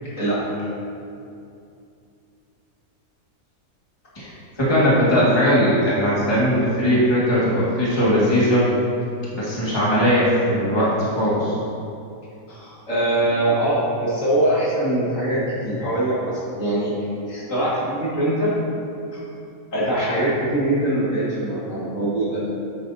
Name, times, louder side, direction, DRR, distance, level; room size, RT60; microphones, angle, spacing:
voice 1, 0.1-0.4 12.5-18.5 19.1-19.2 19.7-22.4, right 1 dB, 60° left, -8 dB, 2.5 m, -23 dB
voice 2, 4.6-8.7 9.3-11.6, equal, 20° left, -8 dB, 1.9 m, -19 dB
8.9 x 8.5 x 2.7 m, 2.6 s
omnidirectional pair, 1.5 m